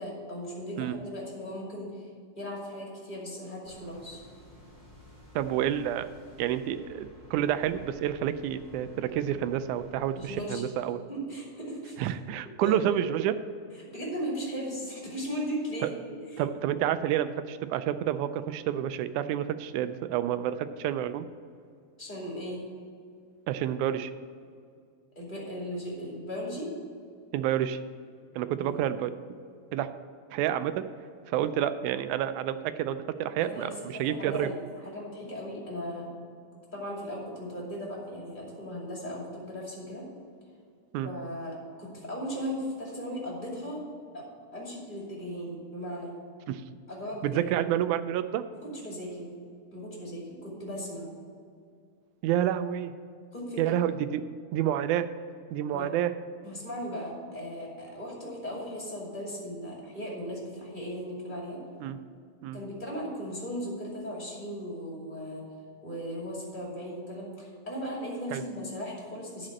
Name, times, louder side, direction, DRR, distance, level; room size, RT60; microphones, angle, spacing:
voice 1, 0.0-2.1 2.3-4.2 9.3-9.4 10.1-10.6 11.1-12.0 12.6-13.0 13.8-16.4 22.0-22.6 25.1-26.7 28.6-28.8 33.4-34.6 34.8-36.1 36.7-40.0 41.0-43.8 44.1-44.2 44.5-46.1 46.9-47.4 48.6-49.3 49.7-51.1 53.3-53.6 55.7-55.9 56.4-61.6 62.5-65.4 65.8-69.5, equal, 15° left, -4 dB, 2.4 m, -37 dB
sound 1, 3.6-10.6, left 1 dB, 10° right, 2.2 m, -53 dB
voice 2, 5.4-6.1 6.4-11.0 12.0-13.3 15.8-15.9 16.4-21.3 23.5-24.1 27.3-27.8 28.4-29.1 29.7-29.9 30.3-30.8 31.3-33.7 34.0-34.5 40.9-41.1 46.5-46.6 47.2-48.4 52.2-52.9 53.6-54.2 54.5-55.1 55.5-56.1 61.8-62.0 62.4-62.6 68.3-68.4, right 11 dB, 85° right, 12 dB, 2.0 m, -29 dB
10.5 x 5.0 x 7.5 m, 2.3 s
omnidirectional pair, 3.5 m